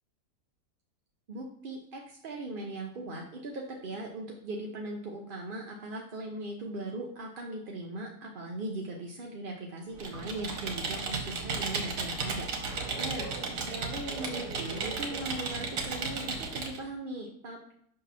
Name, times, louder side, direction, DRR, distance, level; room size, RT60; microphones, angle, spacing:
voice 1, 1.3-12.5 13.0-17.7, right 2 dB, 50° right, 0 dB, 0.6 m, -39 dB
Computer keyboard, 9.9-16.8, right 4 dB, 75° right, 1.5 m, -34 dB
6.6 x 2.9 x 5.6 m, 0.66 s
omnidirectional pair, 1.8 m